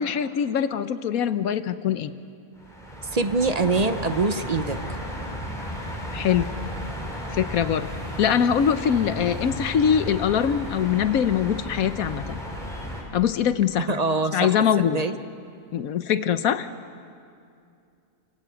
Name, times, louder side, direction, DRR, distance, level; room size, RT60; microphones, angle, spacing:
voice 1, 0.0-2.1 6.1-6.5 7.3-7.9 8.2-12.4 13.1-14.0 14.3-15.0 15.7-16.7, left 8 dB, 75° left, 12 dB, 1.2 m, -23 dB
sound 1, 2.6-13.0, equal, ahead, 4.9 m, -34 dB
voice 2, 3.1-4.8 13.9-15.2, right 3 dB, 35° right, 9 dB, 0.8 m, -24 dB
29.5 x 16.0 x 9.2 m, 2.4 s
omnidirectional pair, 1.5 m